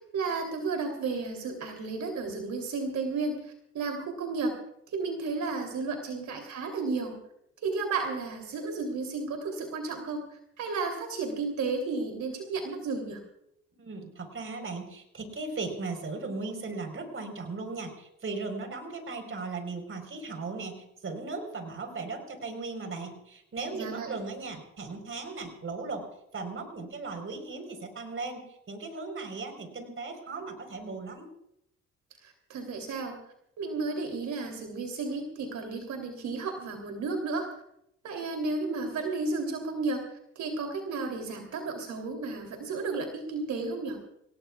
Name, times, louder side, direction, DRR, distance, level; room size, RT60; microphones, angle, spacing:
voice 1, 0.1-4.5 4.9-7.2 7.6-10.2 10.6-13.2 23.7-24.1 32.2-33.1 33.6-37.5 38.0-40.0 40.3-44.0, right 3 dB, 70° right, 2 dB, 3.3 m, -33 dB
voice 2, 13.8-26.1 26.3-31.3, right 3 dB, 45° right, 5 dB, 4.4 m, -37 dB
28.0 x 17.5 x 2.4 m, 0.76 s
cardioid pair, 90°, 30 cm